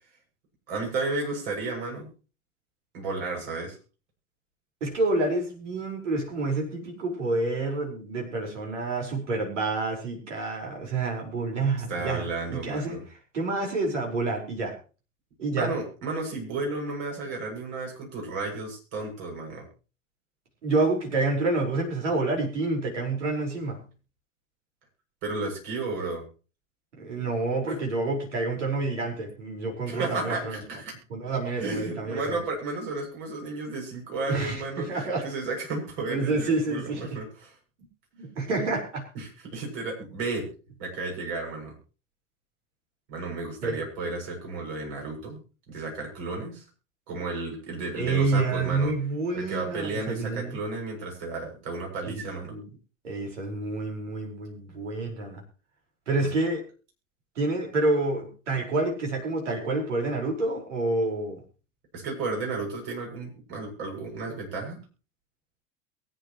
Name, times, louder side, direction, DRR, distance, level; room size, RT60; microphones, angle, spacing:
voice 1, 0.7-2.1 2.9-3.8 11.9-13.0 15.5-19.7 25.2-26.3 27.7-27.8 29.9-30.9 31.6-37.5 39.1-40.5 40.8-41.7 43.1-45.4 45.7-46.6 47.1-48.9 49.3-52.6 56.2-56.3 61.9-64.8, right 3 dB, 50° right, 0 dB, 7.5 m, -33 dB
voice 2, 4.8-12.2 12.5-13.0 13.3-14.8 15.4-15.7 20.6-23.8 27.0-30.6 31.1-32.4 34.3-35.3 36.1-37.2 38.2-39.1 43.6-43.8 48.0-50.6 52.1-52.7 53.0-55.4 56.1-56.6 57.4-61.4, right 3 dB, 65° right, 0 dB, 5.2 m, -28 dB
23.0 x 9.8 x 3.1 m, 0.35 s
figure-of-eight pair, 85°, 39 cm